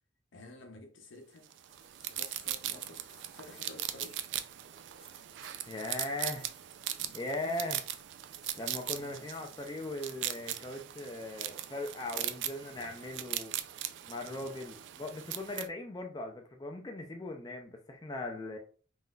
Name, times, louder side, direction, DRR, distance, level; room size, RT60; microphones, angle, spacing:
voice 1, 0.3-1.5 2.1-3.0 3.3-4.2 7.0-7.6 8.9-9.3 12.1-12.4 12.7-12.9 14.2-14.6, left 2 dB, 80° left, 0.6 m, -52 dB
sound 1, 1.5-15.7, right 12 dB, 70° right, 0.3 m, -39 dB
sound 2, 1.7-4.6 5.0-6.7 7.0-9.9, right 1 dB, 5° right, 1.3 m, -59 dB
voice 2, 5.7-6.5 7.1-7.8 8.6-13.5 14.1-18.6, left 2 dB, 20° left, 0.3 m, -39 dB
3.6 x 2.5 x 2.2 m
head